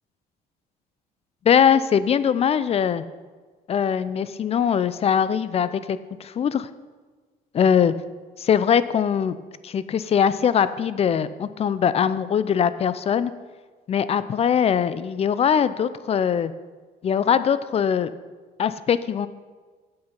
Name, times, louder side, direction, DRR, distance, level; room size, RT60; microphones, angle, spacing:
voice 1, 1.4-3.0 3.7-6.7 7.5-7.9 8.4-9.4 9.6-13.3 13.9-16.5 17.0-18.1 18.6-19.3, left 8 dB, 35° left, 15 dB, 0.5 m, -21 dB
8.8 x 7.8 x 5.4 m, 1.4 s
cardioid pair, 110°, 17 cm